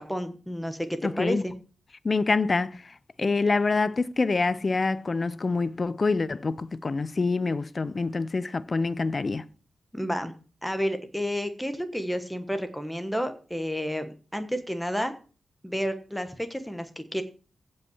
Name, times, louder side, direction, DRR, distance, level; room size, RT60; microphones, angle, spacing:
voice 1, 0.0-1.5 9.9-10.3 10.6-15.1 15.6-17.2, equal, ahead, 1.1 m, -31 dB
voice 2, 1.0-1.4 2.0-9.4, left 3 dB, 30° left, 0.6 m, -26 dB
16.0 x 5.5 x 7.1 m
wide cardioid pair, 165°, 0 cm